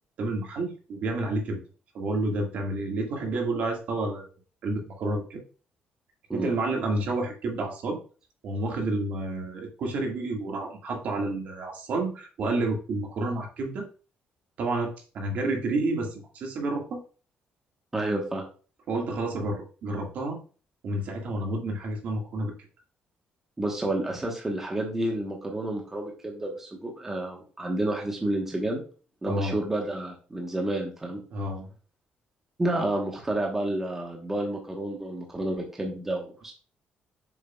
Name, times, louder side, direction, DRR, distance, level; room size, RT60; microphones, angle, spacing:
voice 1, 0.2-1.6 1.9-4.3 4.6-5.4 6.3-8.0 8.4-13.8 14.6-17.0 18.9-20.4 20.8-22.5 29.2-29.5 31.3-31.7, right 2 dB, 55° right, 1 dB, 1.8 m, -30 dB
voice 2, 17.9-18.4 23.6-28.8 29.2-31.2 32.6-36.5, right 1 dB, 10° right, 0 dB, 1.2 m, -30 dB
8.3 x 6.9 x 2.3 m, 0.38 s
cardioid pair, 180°, 3 cm